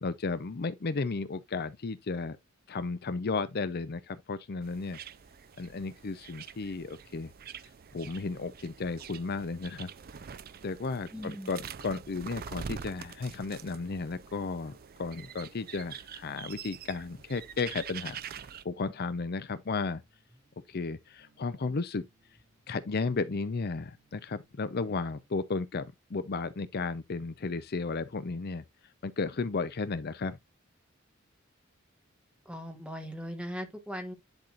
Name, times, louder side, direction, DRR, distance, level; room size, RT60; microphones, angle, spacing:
voice 1, 0.0-2.4 2.7-5.0 5.6-7.3 7.9-9.9 10.6-18.2 18.6-20.0 20.7-22.1 22.7-28.6 29.0-30.4, left 4 dB, 50° left, 0.6 m, -34 dB
sound 1, 4.6-18.6, right 7 dB, 50° right, 0.5 m, -45 dB
voice 2, 11.1-11.5 32.4-34.1, equal, 5° right, 1.6 m, -39 dB
sound 2, 19.5-25.5, right 1 dB, 30° right, 3.0 m, -68 dB
10.5 x 4.2 x 2.5 m
head